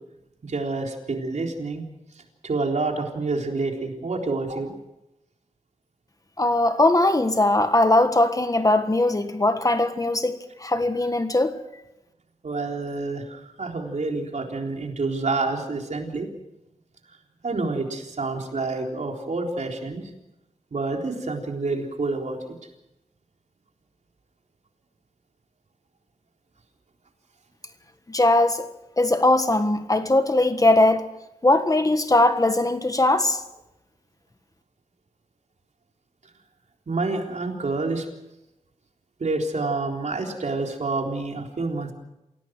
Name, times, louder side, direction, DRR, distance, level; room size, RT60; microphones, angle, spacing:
voice 1, 0.4-1.8 2.4-4.7 6.8-6.9 12.4-16.3 17.4-20.0 20.7-22.5 36.9-38.1 39.2-41.9, right 3 dB, 70° right, 3.9 m, -28 dB
voice 2, 6.4-11.6 28.1-28.7 29.0-31.0 31.4-33.4, left 2 dB, 30° left, 1.5 m, -20 dB
28.0 x 17.0 x 6.2 m
wide cardioid pair, 105°, 12 cm